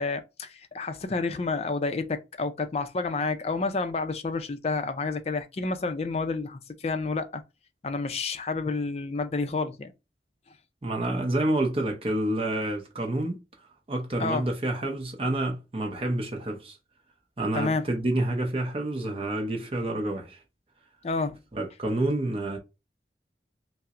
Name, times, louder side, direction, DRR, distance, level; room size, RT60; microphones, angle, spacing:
voice 1, 0.0-7.4 7.8-9.9 14.2-14.4 17.5-17.9 21.0-21.4, left 3 dB, 35° left, 0.4 m, -29 dB
voice 2, 10.8-13.4 13.9-16.8 17.4-20.4 21.5-22.6, right 1 dB, 30° right, 0.6 m, -28 dB
5.5 x 2.0 x 2.4 m
head